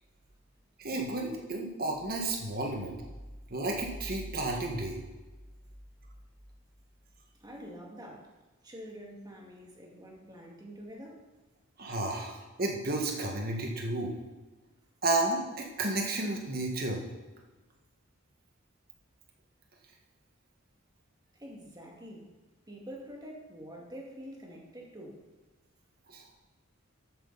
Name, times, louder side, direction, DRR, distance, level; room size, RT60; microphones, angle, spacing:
voice 1, 0.8-3.0 3.5-5.0 11.8-14.1 15.0-17.0 26.1-26.2, right 2 dB, 45° right, 1 dB, 1.8 m, -32 dB
voice 2, 7.4-8.3 8.6-11.3 21.4-22.3 22.7-25.3, equal, 20° right, -1 dB, 2.2 m, -46 dB
12.5 x 9.5 x 4.2 m, 1.2 s
head